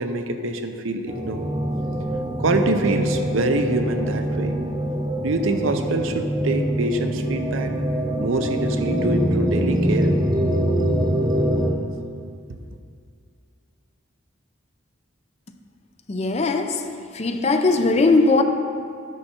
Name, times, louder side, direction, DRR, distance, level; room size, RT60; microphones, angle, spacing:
voice 1, 0.0-1.5 2.4-4.6 5.2-7.7 8.2-10.2, right 2 dB, 75° right, 7 dB, 0.6 m, -25 dB
sound 1, 1.1-11.7, right 1 dB, 20° right, 0.7 m, -24 dB
voice 2, 16.1-16.8 17.1-18.4, left 3 dB, 30° left, 7 dB, 0.5 m, -19 dB
10.0 x 6.5 x 4.3 m, 2.3 s
head